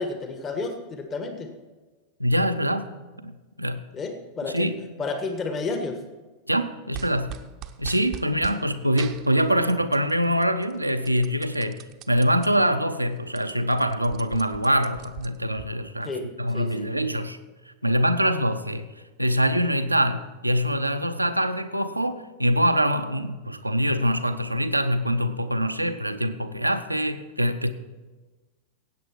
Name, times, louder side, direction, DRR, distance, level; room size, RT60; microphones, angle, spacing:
voice 1, 0.0-1.5 3.9-4.7 5.0-6.0 8.6-8.7 16.0-16.9, left 3 dB, 25° left, 6 dB, 1.5 m, -31 dB
voice 2, 2.2-2.9 3.2-3.9 4.5-4.8 6.5-7.4 7.8-16.1 16.4-17.4 17.7-18.9 19.2-27.7, equal, 85° right, 8 dB, 0.7 m, -24 dB
sound 1, 6.9-8.6 9.0-10.1 10.4-12.5 12.9-13.0 13.2-15.7, right 11 dB, 35° right, 0.7 m, -41 dB
16.5 x 8.4 x 4.5 m, 1.3 s
figure-of-eight pair, 90°, 0 cm